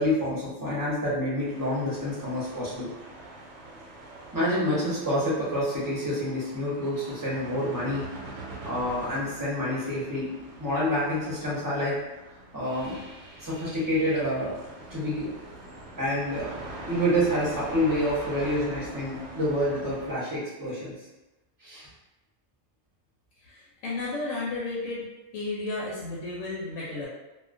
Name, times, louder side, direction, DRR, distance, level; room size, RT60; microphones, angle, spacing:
voice 1, 0.0-2.9 4.3-12.0 12.5-13.0 13.4-14.6 14.9-15.3 16.0-16.5 16.9-21.0 21.6-21.9, equal, 20° right, -7 dB, 0.5 m, -28 dB
sound 1, 1.4-20.1, right 2 dB, 85° right, 1.0 m, -43 dB
voice 2, 23.4-25.0 25.3-27.1, left 2 dB, 80° left, -6 dB, 1.0 m, -33 dB
2.3 x 2.2 x 2.4 m, 1.0 s
omnidirectional pair, 1.3 m